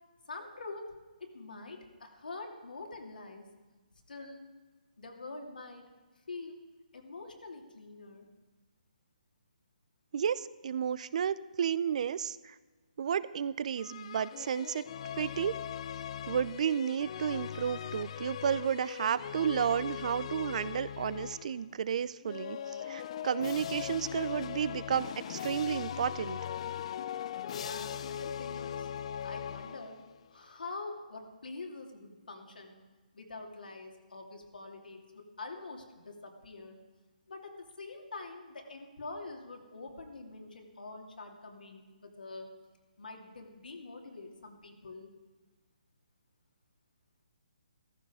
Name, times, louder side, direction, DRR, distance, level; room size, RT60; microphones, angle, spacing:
voice 1, 0.3-0.9 1.2-3.4 4.1-4.5 5.0-5.8 6.3-6.6 6.9-8.3 27.5-28.9 29.2-30.0 30.3-32.8 33.1-36.8 37.3-42.5 43.0-45.1, left 3 dB, 80° left, 3 dB, 2.6 m, -45 dB
voice 2, 10.1-12.5 13.0-14.9 15.2-15.6 16.3-22.6 22.9-26.4, right 8 dB, 50° right, 17 dB, 0.6 m, -32 dB
sound 1, 13.8-21.6 22.2-30.2, left 9 dB, 45° left, 0.5 m, -40 dB
14.5 x 14.5 x 5.0 m, 1.3 s
hypercardioid pair, 155°, 5 cm